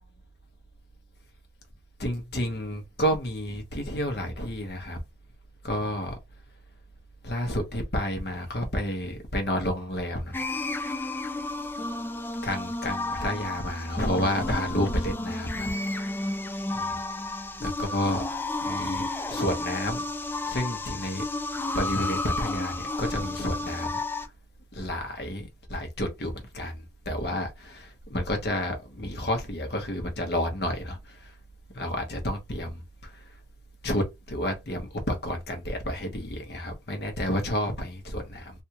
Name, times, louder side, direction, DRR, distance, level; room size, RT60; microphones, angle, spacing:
voice 1, 2.0-5.0 5.6-6.2 7.2-10.4 12.4-15.7 16.7-17.0 17.6-18.2 18.6-20.0 20.5-21.2 21.7-24.0 24.7-31.0 31.7-33.1 33.8-38.5, left 1 dB, 65° left, 1.1 m, -30 dB
sound 1, 10.3-24.3, left 2 dB, 10° left, 0.3 m, -32 dB
3.5 x 2.5 x 2.9 m
head